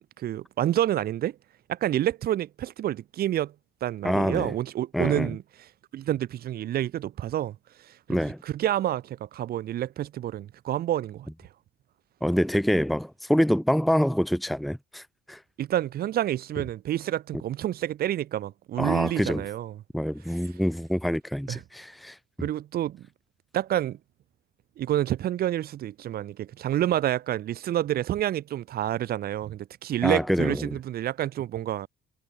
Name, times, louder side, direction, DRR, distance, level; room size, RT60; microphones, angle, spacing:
voice 1, 0.0-1.4 1.7-3.5 3.8-5.4 5.9-7.6 7.9-11.3 15.6-19.8 21.5-21.6 22.4-23.1 23.5-24.0 24.8-31.9, right 12 dB, 65° right, 4.4 m, -28 dB
voice 2, 4.0-4.5 4.9-5.3 8.1-8.4 12.2-15.4 18.8-19.4 19.9-22.2 30.0-30.7, equal, ahead, 1.0 m, -26 dB
cardioid pair, 110°, 17 cm